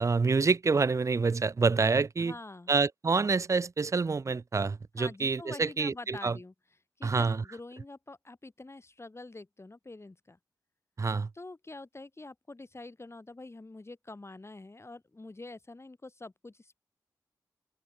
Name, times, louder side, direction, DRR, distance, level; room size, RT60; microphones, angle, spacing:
voice 1, 0.0-2.3 2.7-6.4 7.0-7.4 11.0-11.3, right 4 dB, 40° right, 0.4 m, -27 dB
voice 2, 2.2-2.7 5.0-6.5 7.0-10.4 11.3-16.8, left 2 dB, 35° left, 2.9 m, -46 dB
open air
cardioid pair, 45°, 8 cm